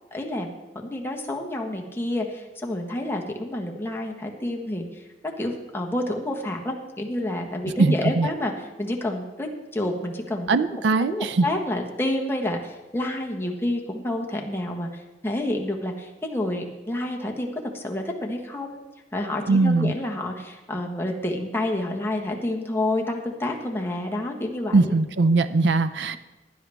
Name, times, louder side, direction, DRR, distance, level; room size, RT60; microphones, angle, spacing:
voice 1, 0.1-0.5 0.8-18.8 19.1-24.9, left 1 dB, 15° left, 0 dB, 1.4 m, -29 dB
voice 2, 7.8-8.3 10.5-11.5 19.5-19.9 24.7-26.2, right 3 dB, 80° right, 11 dB, 0.5 m, -20 dB
16.0 x 10.5 x 3.5 m, 1.1 s
head